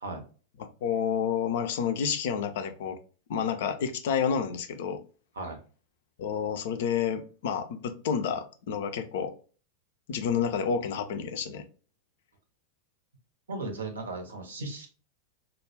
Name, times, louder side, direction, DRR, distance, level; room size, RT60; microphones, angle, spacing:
voice 1, 0.8-3.0 3.3-5.0 6.2-9.3 10.1-11.6, left 7 dB, 55° left, 7 dB, 0.4 m, -29 dB
voice 2, 13.5-14.9, right 3 dB, 70° right, 4 dB, 0.6 m, -36 dB
2.3 x 2.0 x 3.0 m, 0.36 s
figure-of-eight pair, 90°, 0 cm